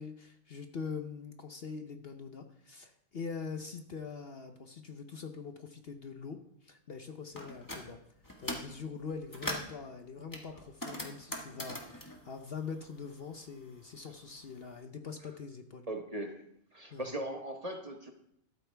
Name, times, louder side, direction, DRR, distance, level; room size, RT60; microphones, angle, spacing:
voice 1, 0.0-8.0 8.4-15.9 16.9-17.1, left 5 dB, 50° left, 6 dB, 0.9 m, -43 dB
sound 1, 7.4-7.8 8.2-8.8 9.1-9.8 10.3-13.2 13.5-14.6, left 1 dB, 15° left, 1.5 m, -41 dB
voice 2, 15.9-16.4 16.7-18.1, right 1 dB, 30° right, 4 dB, 1.0 m, -39 dB
12.5 x 12.5 x 3.4 m, 0.74 s
omnidirectional pair, 1.4 m